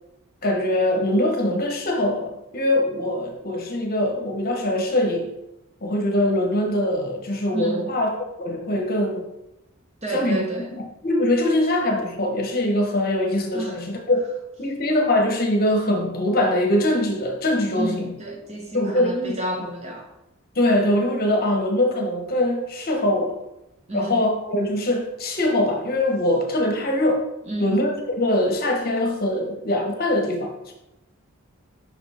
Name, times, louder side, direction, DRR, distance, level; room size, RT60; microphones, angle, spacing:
voice 1, 0.4-5.3 5.8-8.1 8.4-9.3 10.1-10.5 11.0-14.2 14.6-18.1 18.7-19.4 20.5-23.4 23.9-27.3 27.6-30.7, left 1 dB, 45° left, 2 dB, 1.1 m, -22 dB
voice 2, 7.5-7.9 10.0-10.7 13.5-13.8 17.7-20.1 23.9-24.2 27.5-27.9, right 1 dB, 30° right, 1 dB, 1.0 m, -30 dB
5.7 x 5.3 x 4.3 m, 0.91 s
head